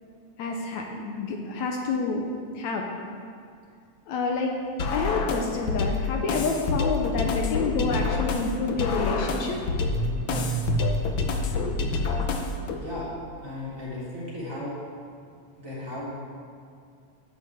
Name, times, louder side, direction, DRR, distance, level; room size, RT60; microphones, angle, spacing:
voice 1, 0.4-2.3 2.5-2.9 4.1-4.6 4.9-9.6, left 4 dB, 70° left, 1 dB, 2.1 m, -28 dB
sound 1, 4.8-12.8, left 4 dB, 90° left, 1.1 m, -27 dB
Car / Engine starting, 8.0-8.1 8.4-13.6, right 4 dB, 70° right, 1.5 m, -34 dB
voice 2, 12.8-13.1 13.4-14.8 15.6-16.1, left 1 dB, 25° right, -8 dB, 3.6 m, -35 dB
10.5 x 6.8 x 8.4 m, 2.3 s
omnidirectional pair, 3.6 m